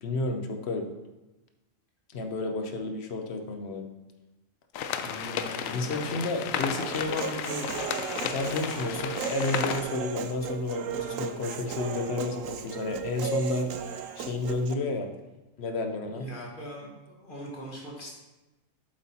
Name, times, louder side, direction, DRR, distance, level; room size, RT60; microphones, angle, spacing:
voice 1, 0.0-0.9 2.1-3.9 5.7-7.7 8.2-13.7 14.2-15.1 15.6-16.3, left 3 dB, 60° left, 5 dB, 1.0 m, -31 dB
sound 1, 4.7-9.8, left 8 dB, 90° left, 1.0 m, -33 dB
voice 2, 5.0-6.1 10.9-11.3 16.1-18.1, equal, 40° left, -4 dB, 1.8 m, -41 dB
Human voice, 6.7-14.7, right 7 dB, 80° right, 1.0 m, -35 dB
8.0 x 7.7 x 2.9 m, 1.1 s
omnidirectional pair, 1.3 m